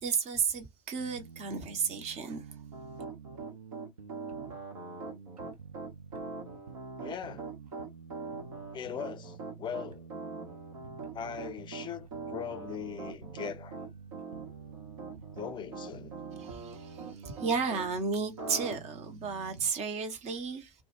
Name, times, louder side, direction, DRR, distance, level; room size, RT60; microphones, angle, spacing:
voice 1, 0.0-2.4 16.4-20.7, right 5 dB, 35° right, 0.9 m, -33 dB
sound 1, 1.0-19.7, right 6 dB, 85° right, 0.5 m, -49 dB
Piano, 2.7-17.9 18.4-18.8, right 4 dB, 65° right, 1.0 m, -42 dB
voice 2, 7.0-7.5 8.7-10.1 11.1-13.8 15.3-16.1, left 8 dB, 25° left, 0.5 m, -40 dB
2.3 x 2.2 x 3.0 m
figure-of-eight pair, 75°, 18 cm